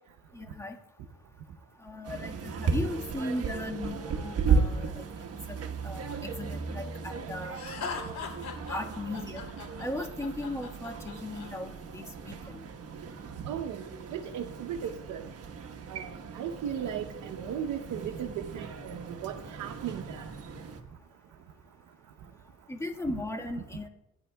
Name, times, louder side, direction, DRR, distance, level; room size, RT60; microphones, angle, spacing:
voice 1, 0.3-0.8 1.8-5.0 5.5-5.6 5.8-7.6 8.7-9.4 9.8-12.6 22.7-23.9, left 1 dB, 10° left, 2 dB, 1.6 m, -37 dB
sound 1, 2.0-20.8, right 5 dB, 55° right, 1.3 m, -35 dB
Laughter, 7.5-11.5, left 5 dB, 65° left, 3.3 m, -39 dB
voice 2, 13.4-13.8 14.1-15.2 15.9-20.3, right 8 dB, 75° right, 5 dB, 0.9 m, -36 dB
19.5 x 9.8 x 2.3 m, 0.89 s
cardioid pair, 90°, 30 cm